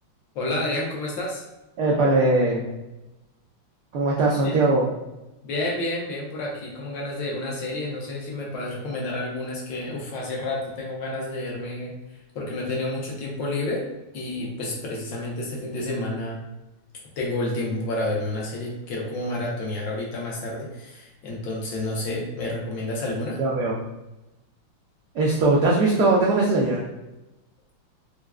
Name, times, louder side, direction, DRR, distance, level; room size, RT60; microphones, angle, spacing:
voice 1, 0.3-1.4 4.4-4.6 5.4-11.9 12.3-13.9 14.1-16.4 17.2-23.4, left 2 dB, 70° left, -2 dB, 1.3 m, -30 dB
voice 2, 1.8-2.7 3.9-4.9 23.4-23.8 25.1-26.8, right 2 dB, 85° right, -4 dB, 0.8 m, -20 dB
4.6 x 2.0 x 2.3 m, 0.98 s
omnidirectional pair, 2.4 m